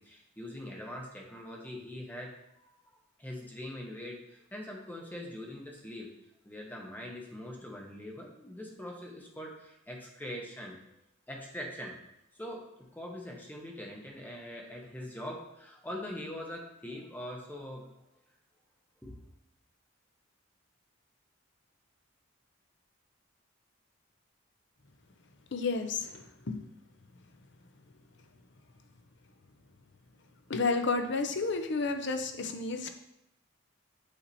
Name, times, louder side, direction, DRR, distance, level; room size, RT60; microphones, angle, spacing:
voice 1, 0.0-6.1 6.4-10.8 11.3-12.0 12.3-17.9 19.0-19.2, left 1 dB, 10° left, 0 dB, 0.9 m, -43 dB
voice 2, 25.5-26.8 30.5-32.9, left 3 dB, 55° left, 6 dB, 0.6 m, -31 dB
8.2 x 2.8 x 4.1 m, 0.84 s
head